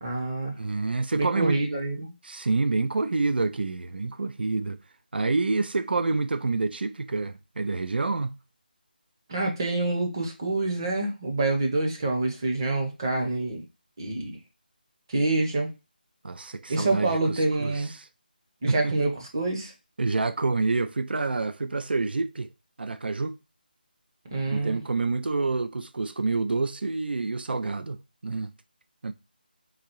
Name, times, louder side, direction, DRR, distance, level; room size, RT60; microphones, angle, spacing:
voice 1, 0.0-0.5 1.1-2.1 9.3-13.6 14.0-14.4 15.1-15.7 16.7-17.9 18.6-19.7 24.2-24.8, right 2 dB, 25° right, 0.8 m, -27 dB
voice 2, 0.6-1.6 2.2-4.8 5.1-8.4 16.2-18.1 18.7-18.9 20.0-22.5 22.8-23.4 24.5-28.5 29.0-29.1, right 3 dB, 80° right, 0.4 m, -28 dB
3.9 x 2.7 x 2.9 m
figure-of-eight pair, 170°, 5 cm